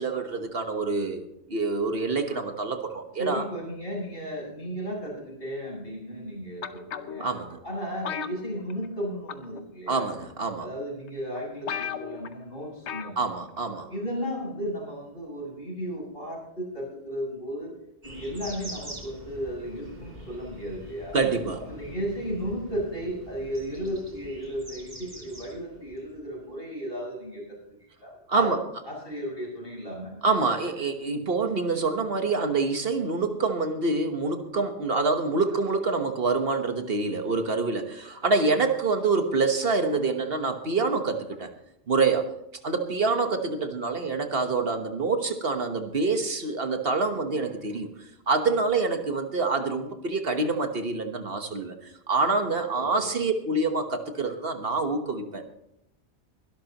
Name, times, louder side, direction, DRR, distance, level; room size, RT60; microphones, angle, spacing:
voice 1, 0.0-3.5 7.2-7.6 9.9-10.7 13.2-13.9 21.1-21.6 28.3-28.6 30.2-41.5 41.9-42.3 42.6-47.9 48.3-55.4, right 3 dB, 60° right, 6 dB, 1.5 m, -26 dB
voice 2, 3.2-7.3 7.6-10.1 10.6-13.3 13.9-17.7 18.0-21.2 21.7-28.5 28.9-30.2 52.7-53.1, equal, 55° left, -3 dB, 7.5 m, -34 dB
sound 1, 6.6-7.3 8.0-9.0 9.3-9.6 10.4-10.5 11.1-11.2 11.4-11.5 11.7-12.3 12.9-13.2 13.5-13.6, left 8 dB, 80° left, 1.1 m, -35 dB
sound 2, 18.0-26.5, equal, 40° right, 3.2 m, -44 dB
22.0 x 12.5 x 3.0 m, 0.81 s
omnidirectional pair, 1.1 m